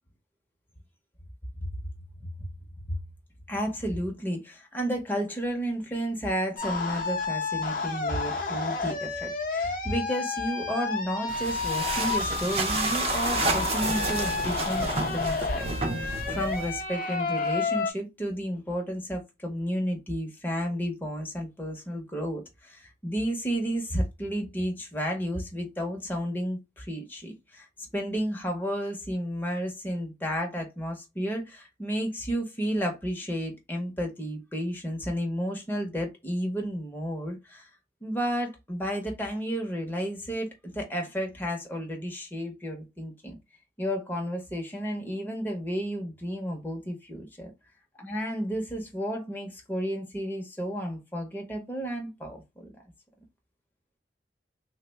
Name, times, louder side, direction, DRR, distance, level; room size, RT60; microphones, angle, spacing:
voice 1, 3.5-27.7 27.9-37.7 38.0-43.4 43.8-47.5 48.0-52.7, equal, 10° left, 0.6 m, -32 dB
sound 1, 6.6-17.9, left 4 dB, 50° left, 0.6 m, -30 dB
sound 2, 11.3-16.8, right 3 dB, 35° right, 0.4 m, -30 dB
3.3 x 2.0 x 3.3 m
head